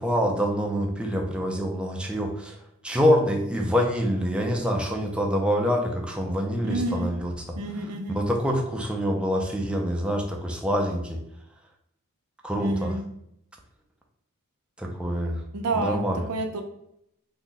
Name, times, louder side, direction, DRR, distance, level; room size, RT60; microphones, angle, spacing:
voice 1, 0.0-2.6 2.8-7.6 8.1-11.2 12.4-13.0 14.8-15.4 15.7-16.2, equal, 5° right, 1 dB, 0.4 m, -26 dB
voice 2, 6.6-7.1 7.6-8.2 12.6-13.0 15.5-16.6, right 2 dB, 85° right, 5 dB, 0.5 m, -29 dB
2.6 x 2.2 x 3.7 m, 0.78 s
head